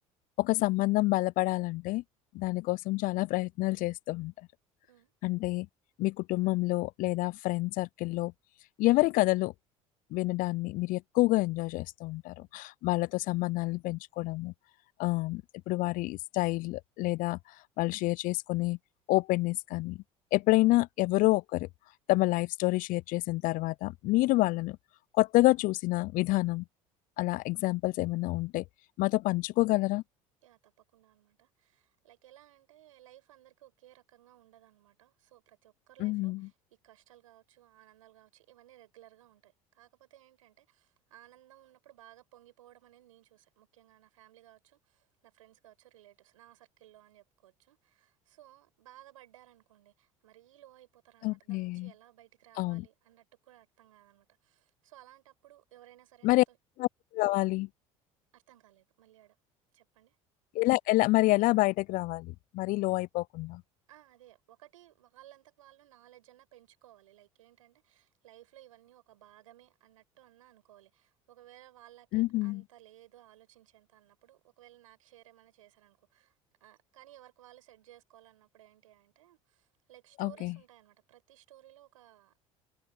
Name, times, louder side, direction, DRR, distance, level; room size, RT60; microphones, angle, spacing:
voice 1, 0.4-2.0 2.3-4.3 5.2-5.7 6.0-8.3 8.8-9.5 10.1-14.5 15.0-15.4 15.7-17.4 17.8-18.8 19.1-20.0 20.3-21.7 22.1-24.8 25.2-26.6 27.2-28.6 29.0-30.0 36.0-36.5 51.2-51.9 52.6-52.8 56.2-56.4 56.8-56.9 57.1-57.7 60.5-63.6 72.1-72.6 80.2-80.5, left 20 dB, 55° left, 0.5 m, -28 dB
voice 2, 30.4-56.6 58.3-59.4 59.7-60.2 62.6-62.7 63.9-76.3 76.6-82.5, right 13 dB, 80° right, 5.2 m, -59 dB
hypercardioid pair, 65°, 17 cm